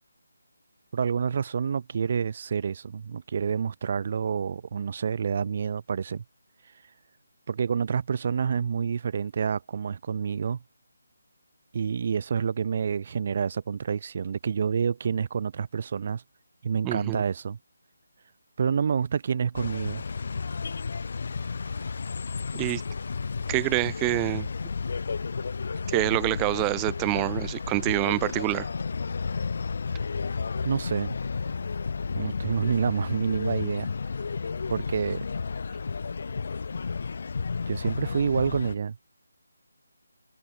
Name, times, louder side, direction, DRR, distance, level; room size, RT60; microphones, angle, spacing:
voice 1, 0.9-6.2 7.5-10.6 11.7-16.2 16.6-17.6 18.6-20.0 30.6-31.2 32.2-33.9 34.7-35.2 37.7-39.0, right 6 dB, 45° right, 1.1 m, -28 dB
voice 2, 16.8-17.2 22.5-22.8 23.5-24.5 25.9-28.7, right 32 dB, 15° right, 0.3 m, -26 dB
sound 1, 19.5-38.8, left 5 dB, 55° left, 0.5 m, -32 dB
figure-of-eight pair, 160°, 0 cm